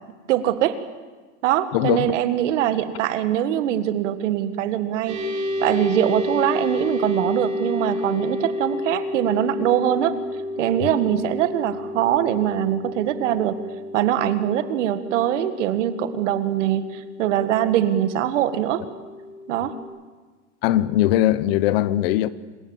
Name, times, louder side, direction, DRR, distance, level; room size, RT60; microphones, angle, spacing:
voice 1, 0.3-0.8 1.4-5.2 5.6-10.1 10.6-13.6 13.9-18.8 19.5-19.8, right 11 dB, 85° right, 1.8 m, -22 dB
voice 2, 1.7-2.1 10.8-10.9 20.6-22.3, left 13 dB, 55° left, 1.0 m, -20 dB
sound 1, 5.1-19.8, left 1 dB, 20° right, 3.1 m, -31 dB
26.5 x 21.0 x 7.2 m
supercardioid pair, 175°, 36 cm